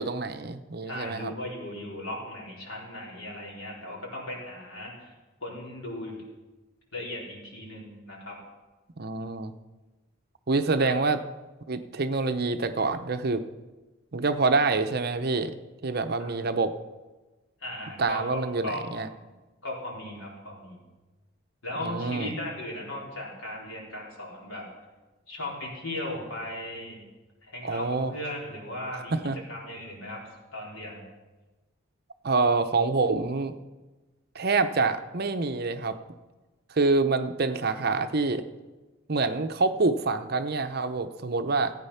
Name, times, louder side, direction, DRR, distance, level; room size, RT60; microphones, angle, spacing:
voice 1, 0.0-1.3 9.0-9.5 10.5-11.2 11.7-13.4 14.1-15.5 15.8-16.8 18.0-19.1 21.8-22.4 27.6-28.1 29.1-29.4 32.2-33.6 34.3-36.0 36.7-38.5 39.1-41.7, right 3 dB, 50° right, 9 dB, 0.7 m, -26 dB
voice 2, 0.9-5.1 5.4-6.2 6.9-8.4 10.8-10.9 16.2-16.3 17.6-18.8 19.6-20.8 21.6-24.6 25.3-27.0 27.4-29.1 29.5-31.1, left 1 dB, 85° left, -3 dB, 4.3 m, -37 dB
15.5 x 9.0 x 5.7 m, 1.2 s
head